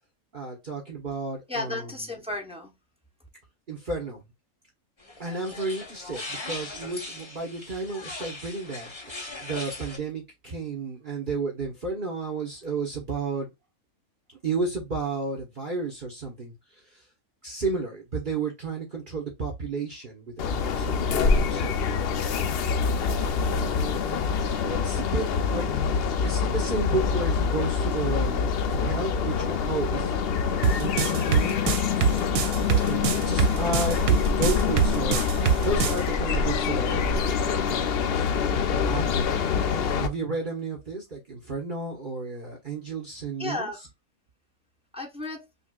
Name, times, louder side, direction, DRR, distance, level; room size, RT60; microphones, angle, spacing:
voice 1, 0.3-2.1 3.7-4.2 5.2-13.5 14.4-16.5 16.9-17.0 17.4-21.9 23.1-24.0 24.6-25.7 26.2-30.5 30.8-31.6 32.8-35.2 35.6-38.0 38.8-39.2 40.0-43.7, right 3 dB, 40° right, 1.1 m, -32 dB
voice 2, 1.5-2.7 43.4-43.8 44.9-45.5, left 2 dB, 5° right, 0.4 m, -33 dB
sound 1, 5.0-10.0, left 2 dB, 25° left, 0.8 m, -39 dB
sound 2, 20.4-40.1, left 5 dB, 65° left, 0.6 m, -25 dB
sound 3, 30.6-36.0, right 7 dB, 75° right, 1.1 m, -23 dB
5.5 x 2.4 x 2.2 m
omnidirectional pair, 1.5 m